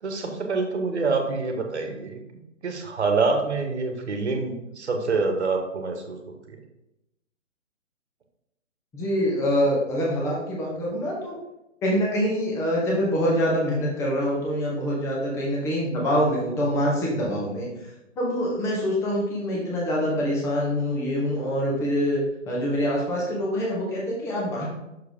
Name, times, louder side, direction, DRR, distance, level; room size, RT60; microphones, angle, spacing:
voice 1, 0.0-2.2 2.6-6.2 6.5-6.6, right 4 dB, 60° right, 4 dB, 1.3 m, -26 dB
voice 2, 8.9-11.3 11.8-17.9 18.2-22.2 22.5-24.7, equal, 5° left, -3 dB, 0.9 m, -25 dB
6.2 x 4.7 x 3.6 m, 0.92 s
figure-of-eight pair, 140°, 38 cm